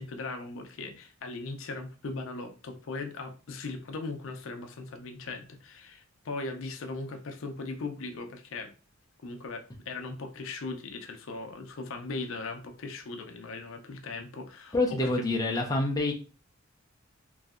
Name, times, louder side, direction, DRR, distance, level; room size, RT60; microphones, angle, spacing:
voice 1, 0.0-8.7 9.2-15.1, left 3 dB, 70° left, 6 dB, 0.5 m, -39 dB
voice 2, 14.7-16.1, left 2 dB, 15° left, 0 dB, 0.4 m, -27 dB
3.1 x 2.7 x 2.4 m, 0.34 s
head